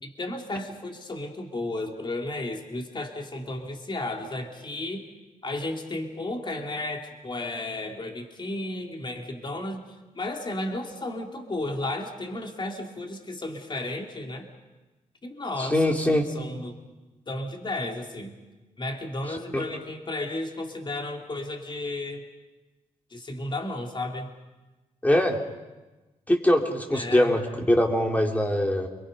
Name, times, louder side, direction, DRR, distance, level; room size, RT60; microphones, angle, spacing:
voice 1, 0.0-5.1 5.4-9.8 10.1-14.5 15.2-16.8 17.3-18.3 18.8-22.2 23.1-24.3 26.9-27.3, left 2 dB, 35° left, 2 dB, 3.1 m, -33 dB
voice 2, 15.6-16.2 19.5-19.6 25.0-25.4 26.3-28.9, left 1 dB, 10° left, 2 dB, 3.1 m, -22 dB
28.5 x 22.5 x 5.4 m, 1.1 s
cardioid pair, 90°, 13 cm